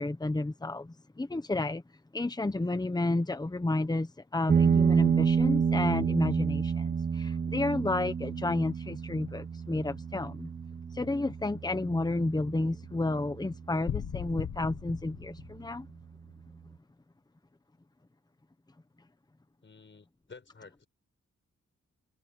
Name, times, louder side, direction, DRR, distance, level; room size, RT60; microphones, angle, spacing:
voice 1, 0.0-1.8 2.1-10.5 10.9-15.9, left 2 dB, 15° left, 1.1 m, -31 dB
sound 1, 4.5-13.5, right 6 dB, 30° right, 0.4 m, -29 dB
sound 2, 13.9-16.0, left 9 dB, 70° left, 1.1 m, -37 dB
voice 2, 19.6-20.9, left 4 dB, 40° left, 5.7 m, -52 dB
wide cardioid pair, 115°, 29 cm